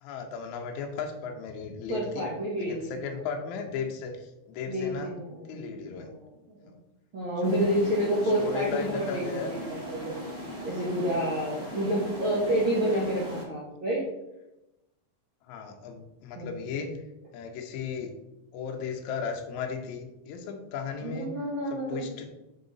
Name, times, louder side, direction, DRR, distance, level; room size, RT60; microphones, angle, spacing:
voice 1, 0.0-2.3 2.6-5.2 5.5-6.1 7.4-7.7 8.4-9.5 11.7-11.8 15.4-16.9 17.3-18.1 18.5-21.3 21.7-22.3, left 5 dB, 75° left, 3 dB, 1.7 m, -35 dB
voice 2, 1.9-2.8 4.7-5.6 5.9-6.6 7.1-10.1 10.6-14.0 16.3-16.5 21.0-22.1, equal, 80° right, -5 dB, 1.1 m, -29 dB
sound 1, 7.4-13.4, equal, 35° right, 1.3 m, -39 dB
7.1 x 5.5 x 4.0 m, 0.94 s
omnidirectional pair, 4.5 m